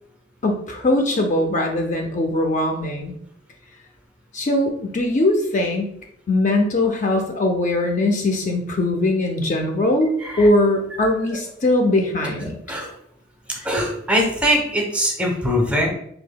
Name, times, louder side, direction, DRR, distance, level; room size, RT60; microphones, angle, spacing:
voice 1, 0.4-3.1 4.3-5.9 6.3-12.6, left 1 dB, 40° left, 3 dB, 0.5 m, -21 dB
voice 2, 13.6-15.9, equal, 5° right, 0 dB, 0.8 m, -21 dB
5.9 x 2.7 x 2.2 m, 0.71 s
head